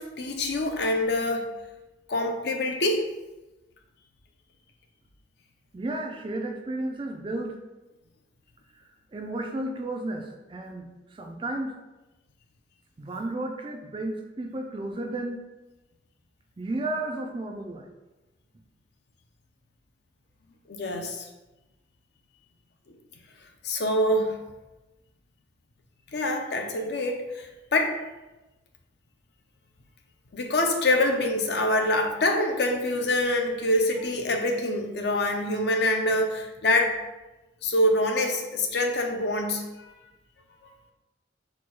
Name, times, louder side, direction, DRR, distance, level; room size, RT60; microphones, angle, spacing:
voice 1, 0.0-1.4 2.1-3.0 20.7-21.3 23.6-24.4 26.1-28.0 30.3-37.0 37.6-39.9 40.6-40.7, left 1 dB, 60° left, 3 dB, 0.6 m, -25 dB
voice 2, 5.7-7.6 8.7-8.8 9.1-11.7 13.0-15.4 16.6-17.9, right 2 dB, 25° right, 3 dB, 0.4 m, -33 dB
4.4 x 2.3 x 4.6 m, 1.1 s
head